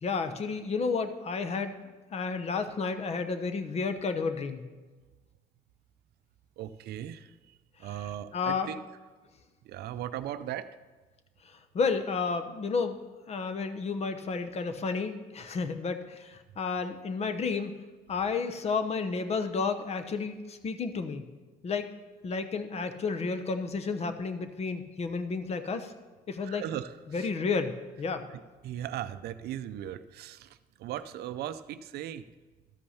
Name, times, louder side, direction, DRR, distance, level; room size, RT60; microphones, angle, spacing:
voice 1, 0.0-1.8 2.1-4.6 8.3-8.7 11.4-13.0 13.3-17.7 18.1-21.2 21.6-21.9 22.2-25.9 26.3-26.6 27.1-28.2, left 4 dB, 40° left, 9 dB, 0.9 m, -31 dB
voice 2, 6.6-8.8 9.6-10.7 26.4-27.3 28.3-32.2, right 11 dB, 70° right, 13 dB, 0.5 m, -38 dB
13.0 x 5.5 x 5.7 m, 1.3 s
cardioid pair, 110°, 17 cm